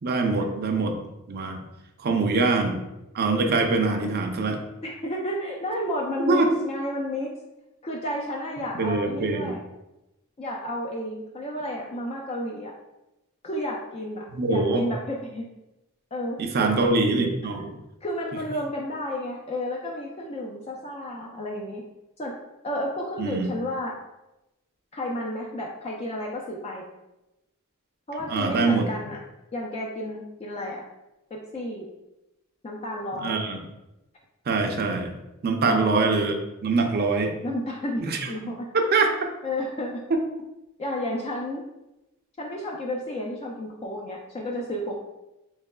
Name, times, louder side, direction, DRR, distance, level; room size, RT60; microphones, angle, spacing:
voice 1, 0.0-1.0 1.3-1.6 2.0-2.8 3.1-4.6 6.3-6.5 8.8-9.6 14.3-14.9 16.4-17.7 23.2-23.5 28.3-28.9 33.2-33.6 34.5-35.1 35.4-37.4 38.0-38.3 38.9-39.1, right 3 dB, 45° right, 3 dB, 0.5 m, -23 dB
voice 2, 3.6-4.1 4.8-7.3 7.8-9.6 10.4-12.7 13.4-15.5 16.1-16.7 18.0-21.8 22.2-22.3 22.6-23.9 24.9-26.8 28.1-29.2 29.5-30.8 31.3-31.9 32.6-33.4 35.6-36.0 37.4-38.7 39.4-40.0 40.8-41.6 42.4-45.0, left 1 dB, 30° left, -1 dB, 0.4 m, -32 dB
4.7 x 3.0 x 2.2 m, 0.96 s
head